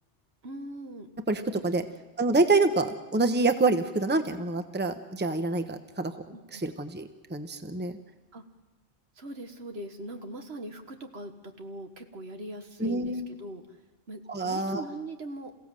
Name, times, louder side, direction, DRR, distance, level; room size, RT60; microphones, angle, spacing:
voice 1, 0.4-1.1 6.3-6.6 8.3-8.4 9.2-11.3 11.6-13.6 14.1-15.5, right 1 dB, 65° right, 6 dB, 1.8 m, -40 dB
voice 2, 1.3-1.9 2.2-6.1 6.5-7.0 7.3-7.9 12.8-13.2 14.3-14.8, right 3 dB, 10° right, 8 dB, 1.0 m, -26 dB
28.0 x 16.0 x 7.6 m, 1.1 s
omnidirectional pair, 1.2 m